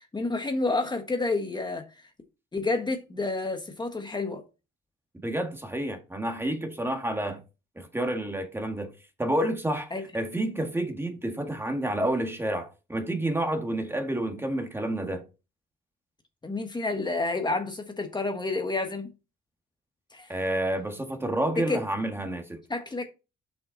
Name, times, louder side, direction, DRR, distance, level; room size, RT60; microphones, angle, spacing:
voice 1, 0.1-2.1 2.5-4.4 9.9-10.0 16.4-19.1 20.1-20.3 21.6-21.8 22.7-23.1, left 3 dB, 20° left, 1.3 m, -29 dB
voice 2, 5.2-7.4 7.8-8.9 9.2-15.2 20.3-22.6, right 1 dB, 10° right, 1.8 m, -29 dB
7.2 x 5.7 x 4.0 m
cardioid pair, 90°, 20 cm